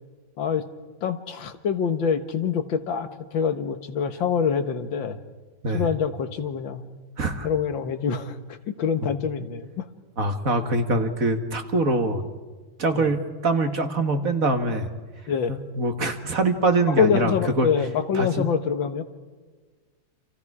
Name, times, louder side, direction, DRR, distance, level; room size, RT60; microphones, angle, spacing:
voice 1, 1.0-5.2 5.7-6.8 7.4-9.9 13.0-13.1 15.3-15.6 17.0-19.0, left 6 dB, 80° left, 9 dB, 2.1 m, -25 dB
voice 2, 10.2-12.3 12.8-14.9 15.5-17.7 18.1-18.5, right 2 dB, 45° right, 6 dB, 2.0 m, -24 dB
29.5 x 27.5 x 4.9 m, 1.4 s
omnidirectional pair, 2.1 m